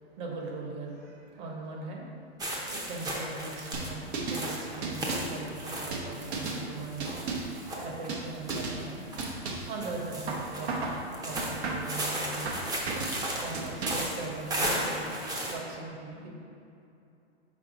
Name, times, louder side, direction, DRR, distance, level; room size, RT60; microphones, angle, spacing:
voice 1, 0.0-7.2 7.8-9.0 9.7-10.9 11.2-12.6 13.4-15.1 15.5-16.3, right 3 dB, 40° right, -1 dB, 1.3 m, -40 dB
sound 1, 2.4-15.5, right 1 dB, 10° right, 0.7 m, -36 dB
sound 2, 3.7-4.4 4.8-5.4 5.9-6.6 7.0-7.6 8.1-8.3 8.5-8.8 9.2-9.7 10.3-11.0 11.4-12.0 12.5-13.2 13.5-14.2, right 3 dB, 75° right, 1.1 m, -34 dB
5.9 x 4.3 x 3.9 m, 2.6 s
hypercardioid pair, 125°, 33 cm